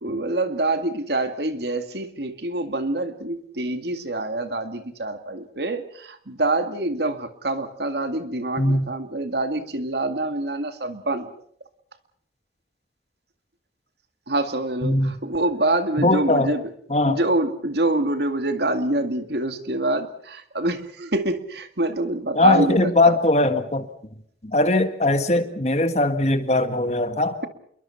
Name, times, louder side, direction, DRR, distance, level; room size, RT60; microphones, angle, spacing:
voice 1, 0.0-11.3 14.3-16.7 17.1-23.2, right 2 dB, 70° right, 8 dB, 2.1 m, -26 dB
voice 2, 14.8-15.2 16.0-16.5 16.9-17.2 22.4-23.9 24.4-27.4, left 2 dB, 40° left, 9 dB, 1.8 m, -20 dB
28.0 x 23.0 x 5.8 m, 0.66 s
head